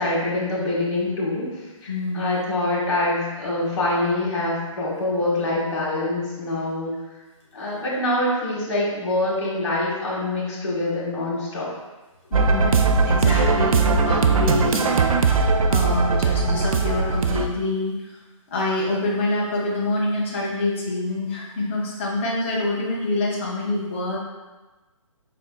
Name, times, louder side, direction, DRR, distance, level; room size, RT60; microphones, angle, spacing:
voice 1, 0.0-6.9 7.5-11.7, left 2 dB, 50° left, -5 dB, 1.4 m, -25 dB
voice 2, 1.9-2.4 12.3-18.1 18.5-24.2, left 2 dB, 20° left, -4 dB, 0.5 m, -26 dB
sound 1, 12.3-17.5, right 4 dB, 80° right, 0.4 m, -19 dB
4.2 x 3.3 x 2.2 m, 1.2 s
hypercardioid pair, 165°, 18 cm